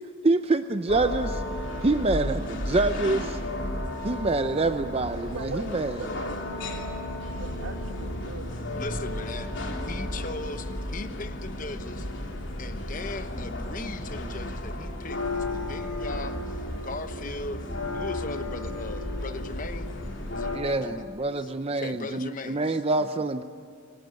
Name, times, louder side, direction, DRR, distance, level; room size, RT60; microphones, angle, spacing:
voice 1, 0.2-1.4 1.8-3.4 4.0-5.9 20.5-23.4, right 2 dB, 30° right, 9 dB, 0.5 m, -26 dB
sound 1, 0.9-20.6, left 1 dB, 60° left, 3.1 m, -33 dB
voice 2, 5.3-6.9 7.2-8.7 10.2-10.3 20.4-20.9, right 3 dB, 80° right, 6 dB, 1.8 m, -41 dB
voice 3, 8.8-9.5 9.9-12.1 12.6-17.6 17.9-19.9 20.3-20.5 20.8-21.0 21.4-23.1, left 3 dB, 40° left, 9 dB, 1.0 m, -38 dB
26.0 x 18.5 x 9.0 m, 2.1 s
head